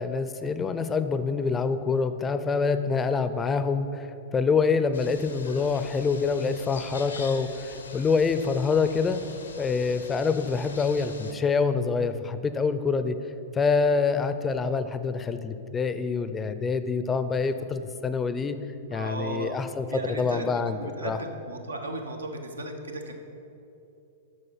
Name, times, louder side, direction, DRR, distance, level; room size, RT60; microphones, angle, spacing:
voice 1, 0.0-4.1 4.3-9.2 9.6-13.2 13.5-18.6 18.9-21.2, left 5 dB, 20° left, 11 dB, 0.5 m, -26 dB
sound 1, 4.9-11.3, left 4 dB, 80° left, 0.8 m, -43 dB
voice 2, 18.9-19.5 19.9-20.5 20.8-23.1, right 2 dB, 80° right, 4 dB, 0.9 m, -35 dB
8.4 x 6.5 x 5.7 m, 2.8 s
figure-of-eight pair, 105°, 0 cm